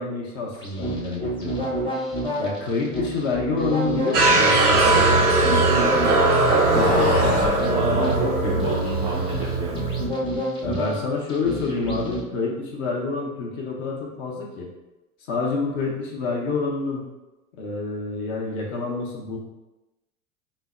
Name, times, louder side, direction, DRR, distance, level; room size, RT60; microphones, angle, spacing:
voice 1, 0.0-1.7 2.4-5.5 6.7-7.2 10.6-14.7 15.3-17.0 17.6-19.4, left 3 dB, 45° left, -1 dB, 1.0 m, -28 dB
sound 1, 0.6-12.2, equal, 10° left, 0.9 m, -29 dB
sound 2, 4.1-10.1, right 2 dB, 85° right, 0.8 m, -20 dB
sound 3, 4.4-5.8 6.5-7.6, left 2 dB, 85° left, 1.0 m, -29 dB
voice 2, 6.8-9.8, right 2 dB, 15° right, -6 dB, 0.4 m, -29 dB
5.5 x 2.1 x 2.5 m, 1.0 s
figure-of-eight pair, 95°, 45 cm